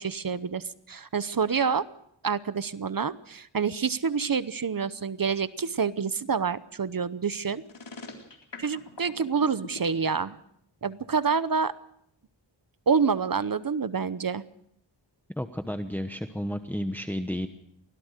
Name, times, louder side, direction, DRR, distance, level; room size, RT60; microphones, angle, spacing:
voice 1, 0.0-1.9 2.2-7.6 8.6-10.4 10.8-11.7 12.9-14.4, right 5 dB, 50° right, 15 dB, 0.8 m, -27 dB
sound 1, 7.6-9.8, left 4 dB, 70° left, 3.7 m, -42 dB
voice 2, 15.4-17.5, equal, 5° left, 8 dB, 1.0 m, -32 dB
24.0 x 17.0 x 6.6 m, 0.71 s
wide cardioid pair, 100°, 45 cm